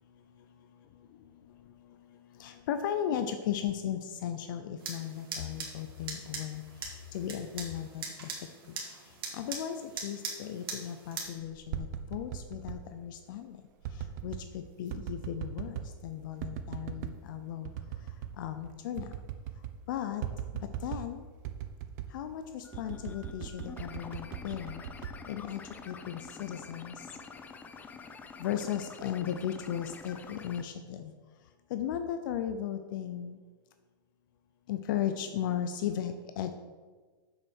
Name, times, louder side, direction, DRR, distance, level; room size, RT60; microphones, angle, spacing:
voice 1, 2.4-6.6 7.1-8.3 8.7-8.8 9.3-9.8 10.0-13.6 14.2-17.7 18.4-19.1 19.9-20.2 20.8-21.3 22.1-24.8 25.3-26.9 28.4-31.1 31.7-33.4 34.7-36.5, left 10 dB, 60° left, 8 dB, 0.6 m, -36 dB
sound 1, 4.8-11.3, right 4 dB, 85° right, 2.3 m, -42 dB
sound 2, 11.5-12.8 13.8-14.5 14.9-16.0 16.4-17.2 17.6-18.4 18.6-18.7 19.0-19.8 20.2-21.1 21.4-22.2 22.7-25.8 26.3-26.7, right 9 dB, 50° right, 0.8 m, -39 dB
sound 3, 22.6-30.6, left 5 dB, 15° left, 0.5 m, -47 dB
7.3 x 6.4 x 6.3 m, 1.4 s
supercardioid pair, 140°, 12 cm